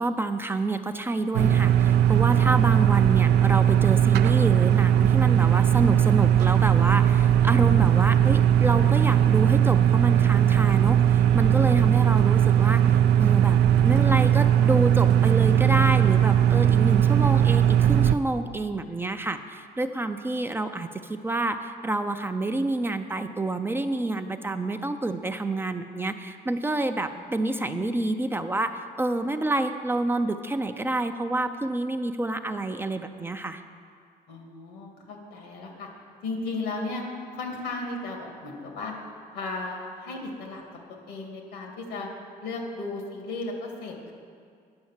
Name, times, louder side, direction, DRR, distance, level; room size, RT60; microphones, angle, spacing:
voice 1, 0.0-33.6, right 2 dB, 15° right, 8 dB, 0.4 m, -28 dB
sound 1, 1.3-18.2, right 10 dB, 75° right, 0.4 m, -19 dB
voice 2, 27.0-28.0 34.3-35.9 36.2-37.0 37.3-38.9 39.3-40.6 40.9-42.1 42.4-44.1, left 3 dB, 90° left, 1 dB, 2.1 m, -35 dB
9.7 x 6.2 x 7.3 m, 2.3 s
cardioid pair, 110°, 17 cm